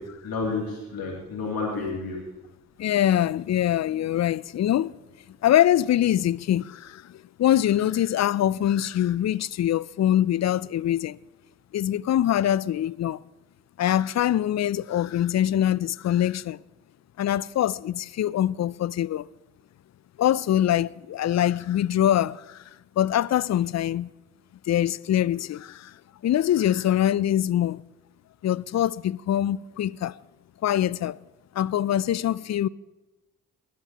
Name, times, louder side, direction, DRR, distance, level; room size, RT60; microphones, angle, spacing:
voice 1, 0.0-2.3, left 3 dB, 60° left, 2.8 m, -31 dB
voice 2, 2.8-4.9 5.4-11.2 11.7-13.2 13.8-16.6 17.2-19.3 20.2-22.6 23.0-24.1 24.7-25.9 26.2-27.8 28.4-30.1 30.6-31.2 31.5-32.7, left 11 dB, 45° left, 0.5 m, -24 dB
20.5 x 12.0 x 2.9 m
hypercardioid pair, 40°, 40 cm